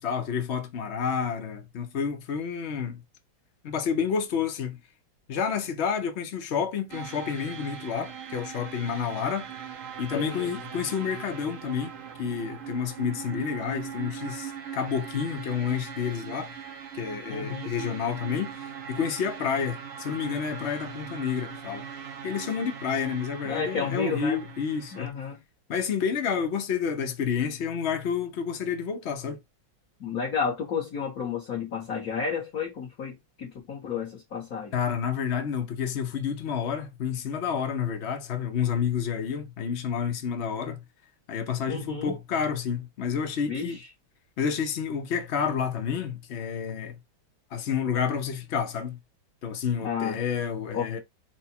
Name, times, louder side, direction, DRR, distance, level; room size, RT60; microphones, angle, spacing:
voice 1, 0.0-3.0 3.6-4.8 5.3-9.5 10.0-11.9 12.2-16.5 16.9-21.9 22.2-25.1 25.7-29.4 34.7-40.8 41.3-43.8 44.4-47.0 47.5-49.0 49.4-51.0, left 7 dB, 80° left, 0.6 m, -29 dB
sound 1, 6.9-25.1, right 8 dB, 70° right, 0.7 m, -40 dB
voice 2, 10.1-10.6 17.3-17.7 23.4-24.4 24.9-25.4 30.0-34.7 41.7-42.1 43.5-43.9 49.8-50.2 50.7-51.0, left 6 dB, 55° left, 1.3 m, -32 dB
4.5 x 2.2 x 4.3 m
omnidirectional pair, 2.1 m